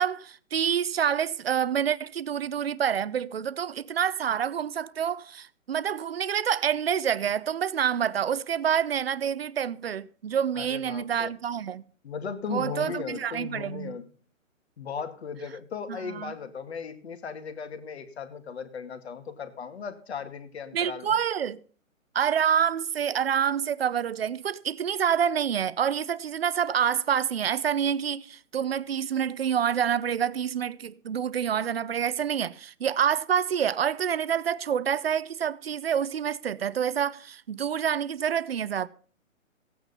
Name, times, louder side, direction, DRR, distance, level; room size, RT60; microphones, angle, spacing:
voice 1, 0.0-11.8 12.5-14.0 15.9-16.4 20.7-21.6 22.1-38.9, right 8 dB, 50° right, 0.8 m, -27 dB
voice 2, 10.6-11.3 12.0-14.1 14.8-21.2, left 6 dB, 50° left, 2.1 m, -37 dB
16.0 x 9.3 x 5.4 m
hypercardioid pair, 160°, 40 cm